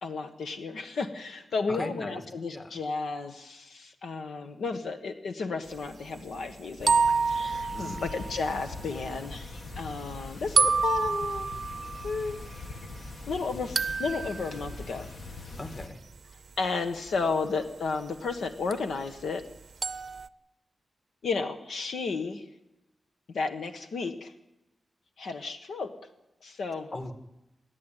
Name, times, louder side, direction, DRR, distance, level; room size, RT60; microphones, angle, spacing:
voice 1, 0.0-6.9 7.2-11.5 12.0-12.4 13.3-15.1 16.6-19.4 21.2-22.4 23.3-24.3 25.2-25.9 26.4-26.9, left 4 dB, 80° left, 6 dB, 1.4 m, -33 dB
voice 2, 1.7-2.2 2.5-2.8 7.7-8.1 15.6-16.0 26.9-27.1, left 2 dB, 30° left, 7 dB, 2.1 m, -38 dB
sound 1, 6.8-15.9, left 3 dB, 55° left, 1.7 m, -42 dB
sound 2, 6.9-8.8 10.6-12.9 13.8-14.6 18.7-18.8 19.8-20.3, right 5 dB, 55° right, 0.6 m, -28 dB
27.5 x 10.5 x 9.1 m, 0.93 s
wide cardioid pair, 115°, 0 cm